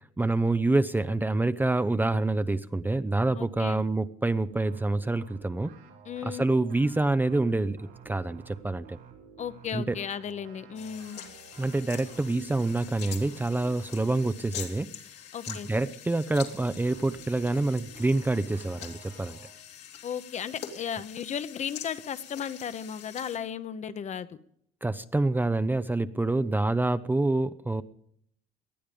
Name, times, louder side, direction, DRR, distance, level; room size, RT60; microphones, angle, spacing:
voice 1, 0.2-5.7 6.2-9.0 9.7-10.0 11.6-14.9 15.5-19.4 24.8-27.8, right 2 dB, 10° right, 12 dB, 0.5 m, -27 dB
voice 2, 3.4-3.8 6.0-6.4 9.4-11.2 15.3-15.7 20.0-24.4, left 8 dB, 45° left, 13 dB, 0.9 m, -35 dB
sound 1, 4.5-14.4 16.3-19.5, right 6 dB, 80° right, 4.1 m, -52 dB
sound 2, 10.7-23.4, left 9 dB, 80° left, 2.8 m, -44 dB
19.0 x 11.5 x 5.2 m, 0.68 s
cardioid pair, 110°, 17 cm